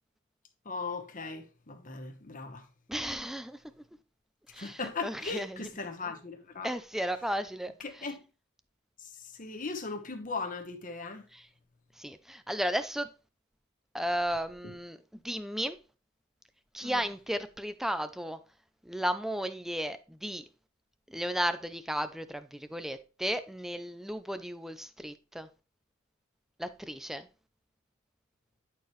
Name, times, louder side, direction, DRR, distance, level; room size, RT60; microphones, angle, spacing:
voice 1, 0.6-2.7 4.6-6.7 7.8-8.1 9.0-11.2 16.8-17.0, left 4 dB, 40° left, 1.1 m, -38 dB
voice 2, 2.9-3.8 4.5-5.7 6.6-8.1 11.3-11.5 12.0-13.1 13.9-15.8 16.7-18.4 18.8-20.4 21.1-25.5 26.6-27.3, equal, ahead, 0.5 m, -34 dB
10.5 x 4.6 x 3.1 m
head